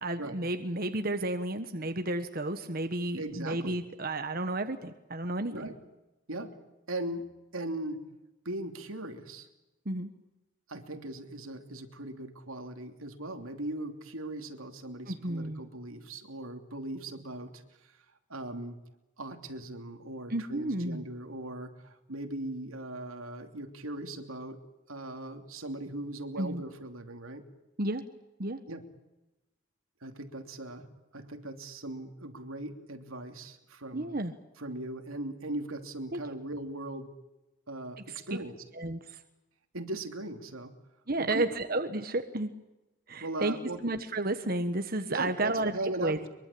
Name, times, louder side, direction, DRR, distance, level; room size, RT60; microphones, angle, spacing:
voice 1, 0.0-5.7 9.8-10.1 15.1-15.6 20.3-21.0 26.4-26.6 27.8-28.0 28.4-28.6 33.9-34.3 36.1-36.2 38.7-39.2 41.1-42.5 43.1-43.5 43.8-45.7 46.0-46.3, right 2 dB, 45° right, 8 dB, 1.4 m, -32 dB
voice 2, 3.2-3.8 5.5-5.8 6.3-6.5 6.9-8.0 8.4-9.5 10.7-18.0 18.3-18.8 19.2-24.6 24.9-27.4 28.7-28.8 30.0-34.1 34.6-37.1 37.7-38.5 39.7-40.7 41.2-41.4 43.2-43.8 45.1-46.3, right 1 dB, 90° right, 6 dB, 3.0 m, -39 dB
23.5 x 23.5 x 8.6 m, 0.99 s
head